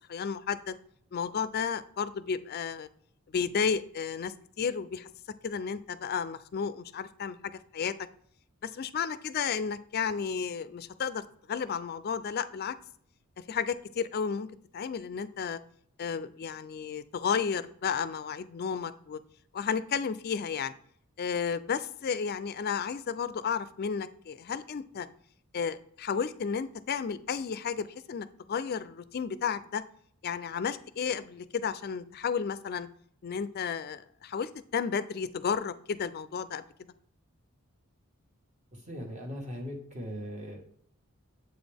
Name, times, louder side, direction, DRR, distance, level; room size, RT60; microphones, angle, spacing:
voice 1, 0.1-0.7 1.1-2.9 3.3-5.1 5.4-7.9 8.6-11.2 11.5-12.7 13.5-14.5 14.7-15.6 16.0-19.2 19.5-20.7 21.2-25.1 25.5-29.8 30.2-32.9 33.2-36.6, left 6 dB, 45° left, 14 dB, 0.3 m, -32 dB
voice 2, 38.7-40.6, equal, 35° right, 1 dB, 1.4 m, -39 dB
7.9 x 4.0 x 3.4 m, 0.64 s
head